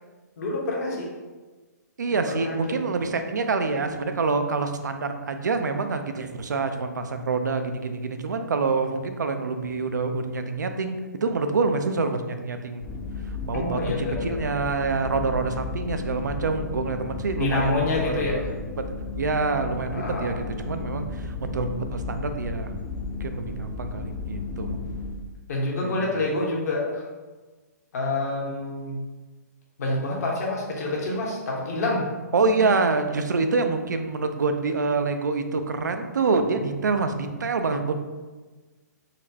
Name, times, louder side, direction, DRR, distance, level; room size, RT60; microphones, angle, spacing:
voice 1, 0.4-1.1 2.1-2.6 13.5-14.5 17.3-18.5 19.9-20.3 25.5-27.0 27.9-29.0 29.8-32.1, left 2 dB, 60° left, -2 dB, 1.0 m, -27 dB
voice 2, 2.0-12.8 13.4-18.5 19.2-22.7 23.2-24.8 25.8-26.2 32.3-37.9, right 4 dB, 85° right, 7 dB, 0.4 m, -26 dB
sound 1, 12.8-25.1, left 3 dB, 10° left, 0.5 m, -34 dB
4.0 x 2.2 x 2.7 m, 1.3 s
hypercardioid pair, 130°, 10 cm